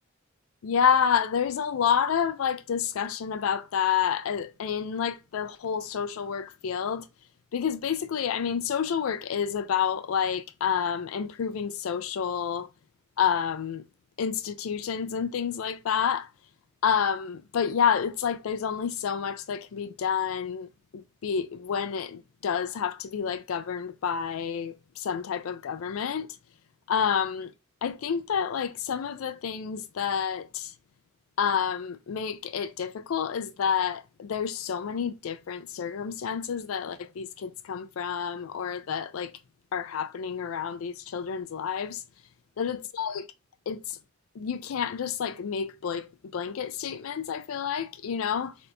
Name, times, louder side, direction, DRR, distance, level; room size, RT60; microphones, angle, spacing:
voice 1, 0.6-7.1 7.5-12.7 13.2-13.8 14.2-16.3 16.8-26.3 26.9-27.5 27.8-30.7 31.4-39.4 39.7-42.0 42.6-43.3 43.7-44.0 44.3-48.6, left 7 dB, 85° left, 0.4 m, -29 dB
4.3 x 3.3 x 2.6 m
head